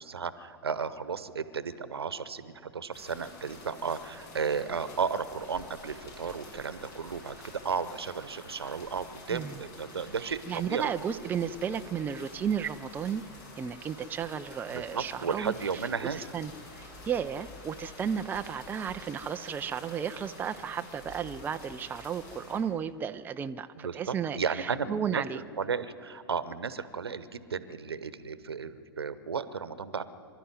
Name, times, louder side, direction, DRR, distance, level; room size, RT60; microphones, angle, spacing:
voice 1, 0.0-11.0 14.7-16.2 23.8-30.0, right 6 dB, 70° right, 14 dB, 1.0 m, -34 dB
sound 1, 2.9-22.6, left 2 dB, 45° left, 6.9 m, -48 dB
voice 2, 10.2-13.2 13.6-15.8 16.1-25.4, right 8 dB, 15° right, 9 dB, 0.5 m, -34 dB
25.0 x 12.0 x 9.4 m, 2.8 s
figure-of-eight pair, 100°, 13 cm